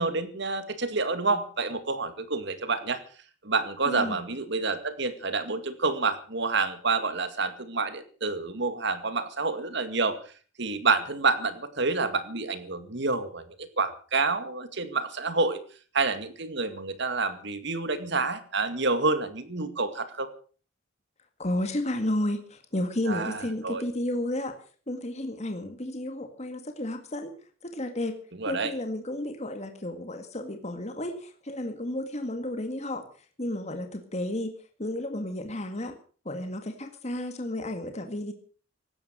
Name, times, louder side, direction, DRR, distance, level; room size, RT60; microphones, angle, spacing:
voice 1, 0.0-3.0 3.4-10.2 10.6-15.6 15.9-20.3 23.1-23.8 28.4-28.7, right 3 dB, 60° right, 11 dB, 2.1 m, -28 dB
voice 2, 3.8-4.2 21.4-24.5 24.9-27.3 27.6-28.2 28.5-33.0 33.4-36.0 36.3-38.3, left 1 dB, 35° left, 6 dB, 1.9 m, -32 dB
16.5 x 12.5 x 6.6 m, 0.42 s
head